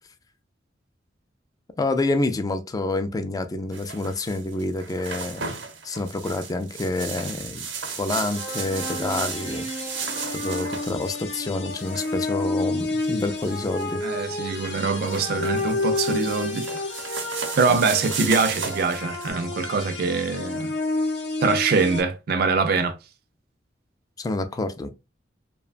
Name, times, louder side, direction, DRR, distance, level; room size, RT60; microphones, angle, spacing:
voice 1, 1.8-5.5 5.8-7.7 8.0-9.7 10.3-14.0 17.7-17.8 24.2-24.9, left 2 dB, 20° left, 0.3 m, -28 dB
sound 1, 3.7-19.3, right 5 dB, 90° right, 0.7 m, -35 dB
sound 2, 8.3-22.0, left 2 dB, 80° left, 0.7 m, -30 dB
voice 2, 14.0-16.8 17.6-20.7 21.4-22.9, right 4 dB, 55° right, 0.4 m, -23 dB
2.8 x 2.2 x 2.4 m
head